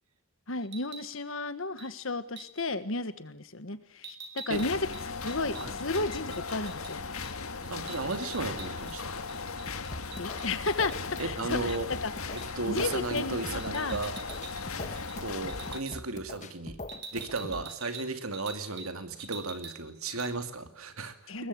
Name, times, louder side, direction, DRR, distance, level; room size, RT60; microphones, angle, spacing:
voice 1, 0.5-4.9 5.2-7.0 10.2-12.1 12.6-14.0 21.3-21.5, left 3 dB, 65° left, 12 dB, 1.7 m, -33 dB
sound 1, 0.6-1.1 1.8-1.9 2.4-2.7 4.0-6.9 7.2-7.4 7.6-9.0 9.3-11.3 11.7-11.8 12.4-12.6 13.6-14.7 15.0-15.2 15.5-16.0 16.9-18.9 19.2-19.8 20.1-20.3, right 5 dB, 50° right, 4.2 m, -46 dB
sound 2, 4.5-15.8, left 4 dB, 80° left, 1.9 m, -38 dB
voice 2, 7.7-9.5 11.2-11.9 12.3-14.1 14.8-16.8 17.1-21.3, right 3 dB, 80° right, 8 dB, 2.7 m, -35 dB
sound 3, 9.7-17.7, left 2 dB, 35° left, 1.7 m, -43 dB
21.0 x 21.0 x 9.7 m, 0.67 s
head